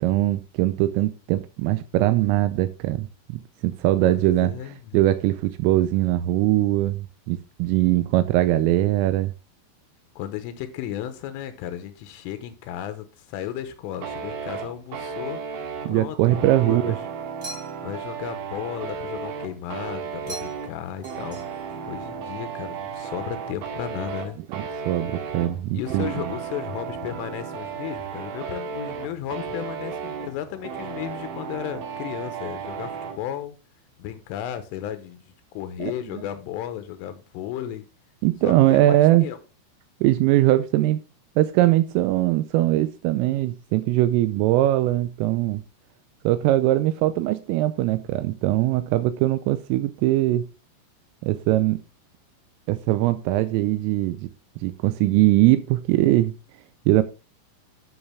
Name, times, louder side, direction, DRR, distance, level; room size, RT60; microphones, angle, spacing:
voice 1, 0.0-4.5 4.9-9.3 15.9-17.0 24.5-26.1 35.8-35.9 38.2-39.3 40.0-41.0 41.4-45.6 46.2-50.5 51.2-51.8 52.7-54.3 54.6-56.3 56.9-57.0, right 15 dB, 85° right, 3.2 m, -21 dB
voice 2, 4.0-5.0 10.2-15.4 15.9-17.0 17.8-24.4 25.7-33.6 34.0-37.8 38.4-39.4, left 11 dB, 80° left, 3.5 m, -34 dB
sound 1, 14.0-33.2, right 6 dB, 70° right, 3.9 m, -34 dB
sound 2, 17.4-18.0 20.3-20.8 21.0-21.8, right 1 dB, 10° right, 2.5 m, -41 dB
10.5 x 6.5 x 3.4 m
omnidirectional pair, 5.8 m